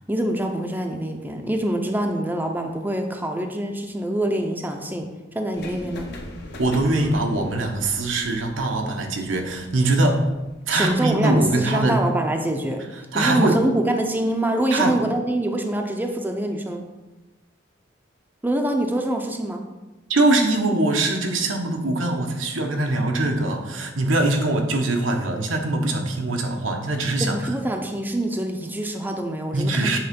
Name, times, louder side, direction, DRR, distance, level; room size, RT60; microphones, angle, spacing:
voice 1, 0.1-5.1 5.3-6.1 10.7-12.8 13.1-16.9 18.4-19.6 27.2-30.0, right 1 dB, 10° right, 3 dB, 0.6 m, -25 dB
sound 1, 5.6-11.5, left 1 dB, 60° left, 1.0 m, -41 dB
voice 2, 6.6-10.2 10.7-12.0 13.1-13.6 14.7-15.0 20.1-27.4 29.5-30.0, right 2 dB, 90° right, 3 dB, 1.0 m, -22 dB
7.9 x 3.7 x 5.2 m, 1.1 s
head